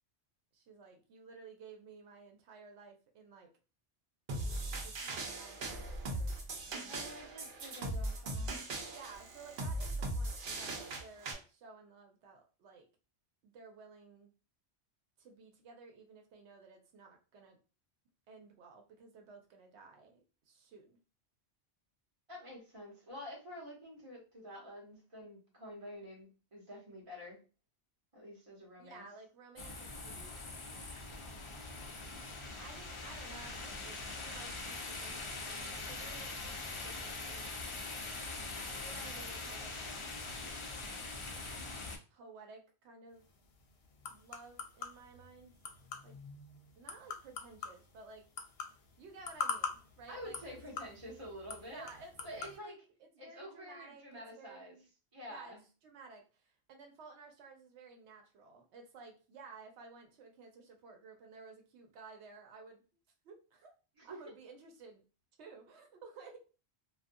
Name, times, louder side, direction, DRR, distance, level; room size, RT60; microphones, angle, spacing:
voice 1, 0.5-3.5 4.7-7.3 8.9-12.9 13.4-14.3 15.2-17.6 18.3-21.0 28.7-30.4 31.1-31.3 32.6-36.4 36.7-37.5 38.7-40.1 42.1-43.2 44.1-45.5 46.0-46.2 46.8-48.2 49.0-50.5 51.7-52.8 53.2-54.9 55.2-55.6 55.8-62.8 63.2-63.7 64.0-65.0 65.4-66.4, right 4 dB, 85° right, 3 dB, 0.9 m, -55 dB
sound 1, 4.3-11.3, right 1 dB, 60° right, 0.7 m, -39 dB
voice 2, 6.9-8.6 22.3-27.4 28.1-29.0 50.1-51.9 52.2-52.8 53.2-54.8 55.1-55.6 64.0-64.3, equal, 30° right, -3 dB, 1.0 m, -48 dB
sound 2, 29.6-42.0, left 3 dB, 55° left, 0.3 m, -43 dB
sound 3, 43.1-52.6, left 6 dB, 70° left, 0.8 m, -45 dB
2.5 x 2.2 x 2.5 m, 0.34 s
omnidirectional pair, 1.1 m